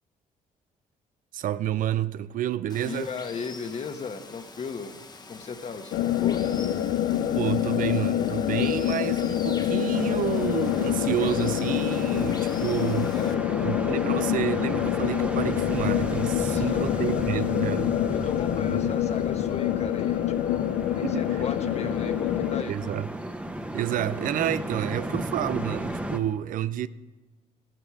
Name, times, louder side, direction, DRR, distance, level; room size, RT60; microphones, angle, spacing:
voice 1, 1.3-3.1 7.3-13.1 13.6-18.0 21.0-21.3 22.7-23.1 23.7-26.9, right 11 dB, 65° right, 0.5 m, -29 dB
Water, 2.7-13.3, left 3 dB, 30° left, 1.3 m, -45 dB
voice 2, 2.8-5.0 5.3-6.4 13.1-13.5 16.4-17.2 18.1-22.9, left 5 dB, 45° left, 1.4 m, -37 dB
sound 1, 5.9-22.6, left 11 dB, 75° left, 0.5 m, -26 dB
sound 2, 9.9-26.2, right 1 dB, 10° right, 1.2 m, -35 dB
13.5 x 12.5 x 4.8 m
supercardioid pair, 75°, 15 cm